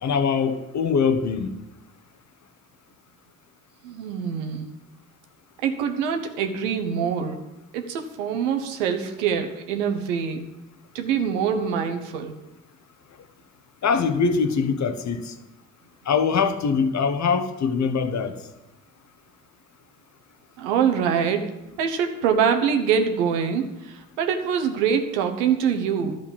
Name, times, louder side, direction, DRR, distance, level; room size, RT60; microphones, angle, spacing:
voice 1, 0.0-1.5 13.8-15.3 16.1-18.3, left 5 dB, 50° left, 1.1 m, -23 dB
voice 2, 3.8-4.7 5.6-7.4 7.7-10.4 10.9-12.3 20.6-21.5 21.8-26.2, right 7 dB, 90° right, 1.0 m, -24 dB
11.5 x 5.2 x 7.1 m
hypercardioid pair, 50°, 35 cm